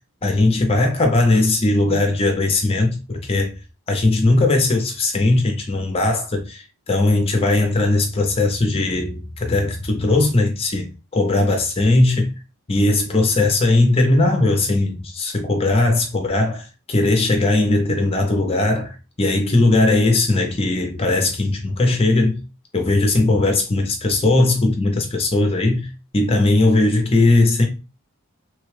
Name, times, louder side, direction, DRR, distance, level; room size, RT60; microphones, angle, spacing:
voice 1, 0.2-3.5 3.9-10.9 11.1-12.3 12.7-22.4 22.7-27.6, left 2 dB, 25° left, 0.5 m, -18 dB
3.2 x 2.2 x 3.1 m
head